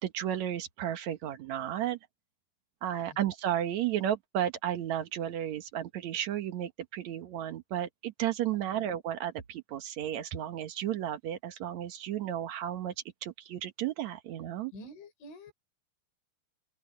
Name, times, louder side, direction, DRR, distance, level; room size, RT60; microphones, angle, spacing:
voice 1, 0.0-2.0 2.8-12.9 13.2-14.7, right 11 dB, 75° right, 1.7 m, -33 dB
voice 2, 14.7-15.5, equal, 85° left, 6.2 m, -48 dB
open air
omnidirectional pair, 5.2 m